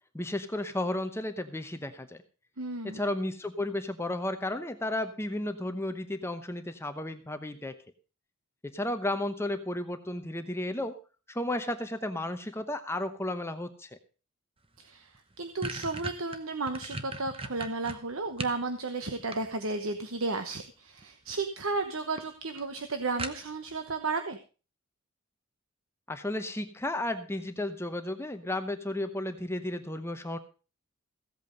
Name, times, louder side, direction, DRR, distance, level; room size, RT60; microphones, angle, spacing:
voice 1, 0.1-2.2 2.8-7.7 8.6-10.9 11.3-14.0 26.1-30.4, left 1 dB, 10° left, 8 dB, 0.8 m, -33 dB
voice 2, 2.6-3.0 14.8-24.4, right 3 dB, 65° right, 7 dB, 1.1 m, -33 dB
sound 1, 14.7-14.8 15.1-18.6 19.0-19.9 21.0-21.4 21.7-21.8 22.2-22.3 22.6-22.7 23.2-23.7, right 3 dB, 25° right, 1.0 m, -38 dB
16.0 x 8.2 x 5.2 m, 0.35 s
head